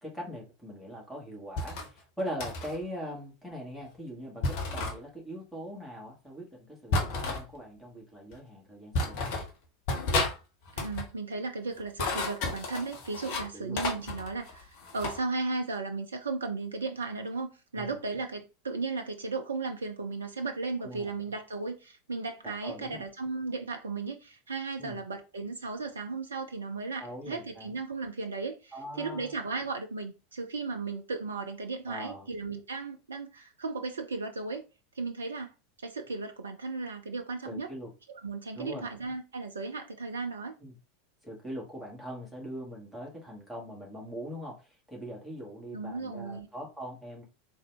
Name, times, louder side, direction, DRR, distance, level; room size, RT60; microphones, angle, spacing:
voice 1, 0.0-9.4 13.5-13.8 17.8-18.0 20.8-21.1 22.4-23.0 24.8-25.0 27.0-27.7 28.7-29.3 31.9-32.3 37.4-37.9 38.5-38.9 40.6-40.8 41.2-47.2, equal, ahead, 1.7 m, -41 dB
sound 1, 1.6-1.9 2.4-2.8 4.4-5.0 6.9-7.4 8.3-8.4 8.9-9.5 9.9-10.4 10.7-11.1 11.8-13.5 13.8-15.2, left 2 dB, 50° left, 1.0 m, -31 dB
voice 2, 10.7-34.6 35.0-35.5 35.8-37.7 38.1-40.5 45.7-46.5, right 3 dB, 75° right, 0.5 m, -35 dB
3.8 x 2.6 x 3.3 m
figure-of-eight pair, 85°, 0 cm